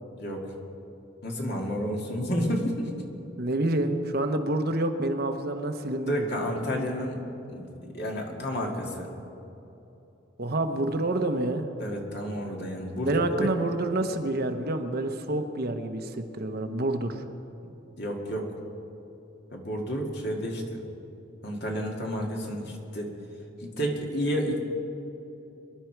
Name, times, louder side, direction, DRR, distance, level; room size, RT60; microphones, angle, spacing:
voice 1, 0.1-0.5 1.2-3.0 6.1-7.2 7.5-9.1 11.8-13.1 13.4-13.5 17.9-18.5 19.5-20.8 21.4-23.1 23.6-24.6, equal, 55° left, 0 dB, 2.2 m, -31 dB
voice 2, 3.4-6.3 10.4-11.7 13.0-17.2, right 2 dB, 50° right, 6 dB, 0.9 m, -28 dB
24.5 x 11.0 x 4.6 m, 3.0 s
head